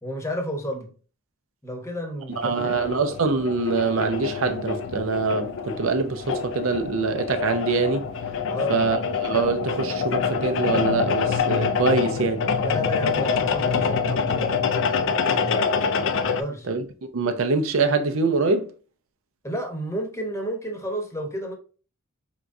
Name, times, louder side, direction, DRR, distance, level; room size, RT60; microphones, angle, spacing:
voice 1, 0.0-0.9 1.6-2.9 8.5-8.7 12.6-15.6 16.2-16.7 19.4-21.5, equal, 15° left, 0.9 m, -31 dB
sound 1, 2.3-16.4, left 5 dB, 60° left, 0.4 m, -26 dB
voice 2, 2.4-8.1 8.7-12.5 16.7-16.8 17.1-18.7, right 4 dB, 70° right, 0.6 m, -24 dB
4.6 x 3.7 x 2.6 m
head